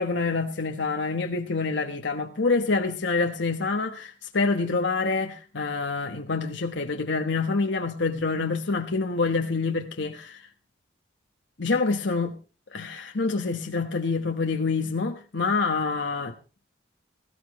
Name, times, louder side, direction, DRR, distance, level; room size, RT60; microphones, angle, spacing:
voice 1, 0.0-10.4 11.6-12.4 12.7-16.3, left 4 dB, 70° left, 1.2 m, -26 dB
18.0 x 14.5 x 3.1 m
head